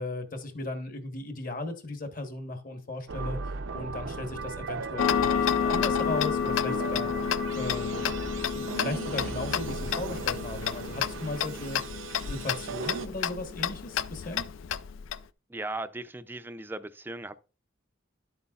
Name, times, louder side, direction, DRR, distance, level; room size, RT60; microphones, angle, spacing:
voice 1, 0.0-7.1 7.6-8.1 8.5-11.8 12.2-14.4, left 2 dB, 40° left, 1.2 m, -36 dB
sound 1, 3.1-13.1, right 4 dB, 70° right, 0.5 m, -37 dB
Tick-tock, 5.0-15.2, left 8 dB, 70° left, 0.4 m, -30 dB
voice 2, 15.5-17.3, right 2 dB, 10° right, 0.4 m, -37 dB
11.0 x 8.2 x 2.4 m
head